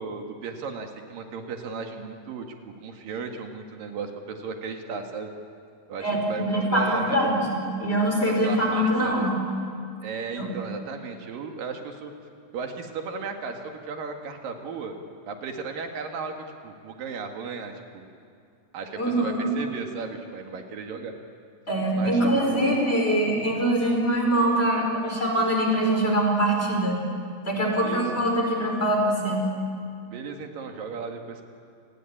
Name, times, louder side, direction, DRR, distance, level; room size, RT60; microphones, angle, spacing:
voice 1, 0.0-2.4 2.8-5.3 5.9-7.3 8.3-9.3 10.0-12.1 12.5-14.9 15.3-18.1 18.7-21.1 21.9-22.8 23.8-24.0 27.8-28.0 30.1-31.4, right 5 dB, 60° right, 4 dB, 3.4 m, -35 dB
voice 2, 6.0-9.4 10.4-10.5 19.0-19.5 21.7-27.0 27.4-29.5, right 1 dB, 15° left, 0 dB, 5.0 m, -23 dB
30.0 x 19.5 x 8.7 m, 2.4 s
omnidirectional pair, 5.0 m